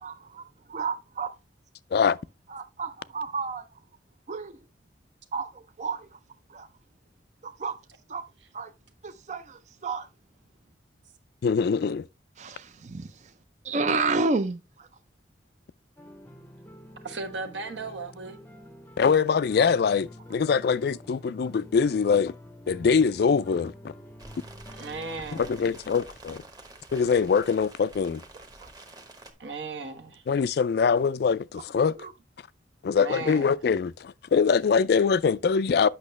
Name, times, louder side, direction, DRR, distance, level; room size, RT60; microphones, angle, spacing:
voice 1, 0.0-1.3 2.5-3.8 4.3-4.5 5.3-6.2 6.5-6.7 7.4-7.8 8.1-8.2 8.5-8.7 9.0-10.1 12.4-13.3 13.6-14.9 28.3-28.7 32.0-32.1, right 3 dB, 40° right, 0.4 m, -31 dB
voice 2, 11.4-12.1 19.0-22.3 22.7-23.7 25.3-26.4 26.9-28.2 30.3-31.9 32.8-35.9, left 6 dB, 55° left, 0.3 m, -23 dB
sound 1, 16.0-25.7, equal, 10° left, 0.6 m, -47 dB
voice 3, 17.0-18.4 24.7-25.5 29.4-30.2 33.0-33.5, right 3 dB, 70° right, 1.3 m, -36 dB
sound 2, 24.2-29.3, right 2 dB, 20° right, 1.0 m, -48 dB
8.5 x 6.0 x 3.1 m
head